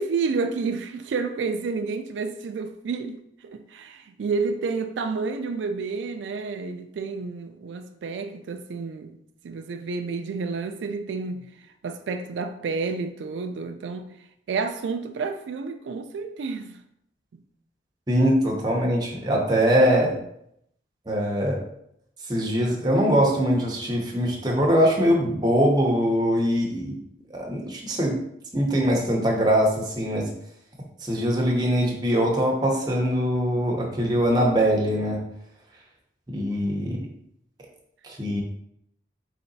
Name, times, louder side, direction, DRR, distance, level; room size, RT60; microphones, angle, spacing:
voice 1, 0.0-3.2 3.4-9.2 9.4-11.5 11.8-14.1 14.5-16.8 17.3-17.4, right 4 dB, 90° right, 0.3 m, -30 dB
voice 2, 18.1-20.2 21.1-21.6 22.3-27.0 27.3-28.2 28.5-30.3 31.0-35.2 36.3-37.0 38.0-38.4, equal, 20° right, 0.8 m, -22 dB
3.9 x 3.3 x 4.0 m
head